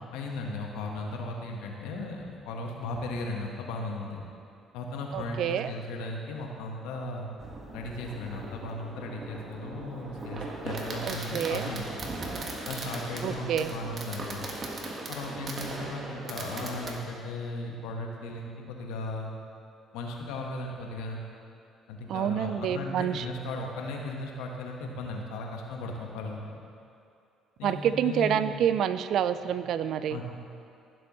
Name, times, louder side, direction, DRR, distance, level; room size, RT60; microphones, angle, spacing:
voice 1, 0.0-4.2 4.7-7.3 7.7-11.9 12.6-14.5 15.1-19.3 19.9-21.2 21.9-26.6 27.6-28.6 30.1-30.2, left 2 dB, 85° left, 1 dB, 1.2 m, -36 dB
voice 2, 5.1-5.7 11.0-11.7 13.2-13.7 22.1-23.2 27.6-30.2, right 9 dB, 65° right, 13 dB, 0.4 m, -28 dB
Fireworks, 7.4-16.9, right 2 dB, 45° right, 1.4 m, -38 dB
15.0 x 7.7 x 3.0 m, 2.5 s
supercardioid pair, 70°, 0 cm